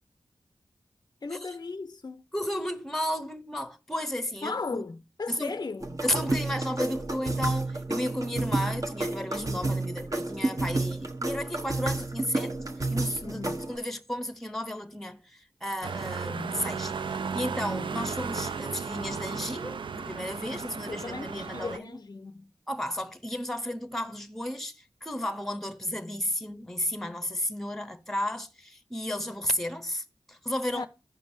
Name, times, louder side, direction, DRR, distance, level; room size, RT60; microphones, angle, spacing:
voice 1, 1.2-2.2 4.4-6.0 13.2-13.6 17.6-17.7 20.4-22.5 30.7-30.9, left 4 dB, 45° left, 0.5 m, -37 dB
voice 2, 2.3-4.8 5.3-5.5 6.0-12.6 12.9-13.4 13.7-22.0 22.7-30.9, left 1 dB, 5° left, 0.9 m, -33 dB
sound 1, 5.8-13.8, right 2 dB, 40° right, 1.0 m, -30 dB
sound 2, 15.8-21.8, right 5 dB, 70° right, 0.4 m, -35 dB
15.5 x 5.3 x 2.6 m
wide cardioid pair, 60°, 9 cm